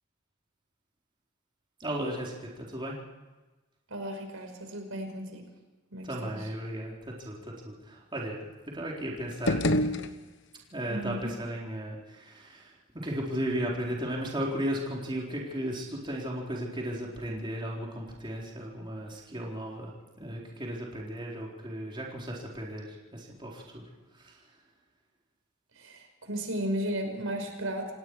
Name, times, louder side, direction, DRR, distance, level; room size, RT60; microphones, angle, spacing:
voice 1, 1.8-3.0 6.0-9.6 10.7-23.8 24.1-24.4, equal, 25° right, -3 dB, 4.1 m, -35 dB
voice 2, 3.9-5.5 5.9-6.4 10.9-11.3 25.8-27.9, right 1 dB, 75° right, 4 dB, 5.5 m, -34 dB
sound 1, 9.3-10.7, left 1 dB, 60° left, 1.2 m, -28 dB
29.5 x 18.5 x 4.8 m, 1.2 s
head